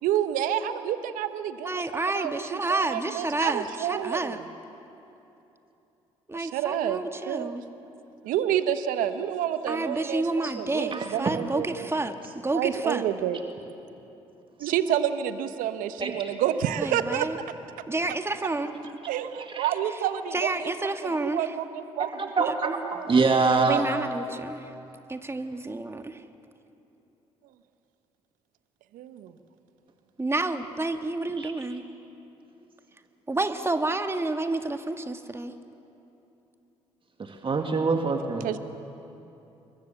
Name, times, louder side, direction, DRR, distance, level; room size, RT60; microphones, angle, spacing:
voice 1, 0.0-1.8 2.1-4.4 6.3-7.6 8.2-11.9 12.5-13.4 14.6-17.3 19.1-23.2 28.9-29.3 38.4-38.6, right 10 dB, 70° right, 10 dB, 1.2 m, -29 dB
voice 2, 1.6-4.4 6.3-7.6 9.7-12.1 12.4-13.0 16.8-17.4 17.9-18.7 20.3-21.4 22.4-22.5 23.7-24.7 25.1-26.2 30.2-31.8 33.3-35.5, right 2 dB, 15° right, 7 dB, 1.8 m, -29 dB
voice 3, 19.4-19.7 22.0-22.8 23.1-23.8 31.4-31.5 37.2-38.5, right 4 dB, 35° right, 4 dB, 2.1 m, -25 dB
28.5 x 22.5 x 7.1 m, 2.9 s
hypercardioid pair, 50°, 15 cm